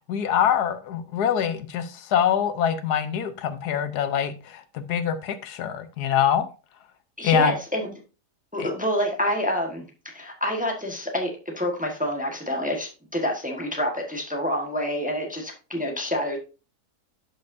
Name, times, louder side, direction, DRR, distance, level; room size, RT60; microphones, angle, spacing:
voice 1, 0.1-6.5 7.2-7.5 8.6-8.7, left 9 dB, 75° left, 11 dB, 1.2 m, -24 dB
voice 2, 7.2-7.9 8.5-16.4, equal, 5° right, 2 dB, 1.1 m, -27 dB
11.5 x 5.3 x 2.6 m, 0.32 s
omnidirectional pair, 1.8 m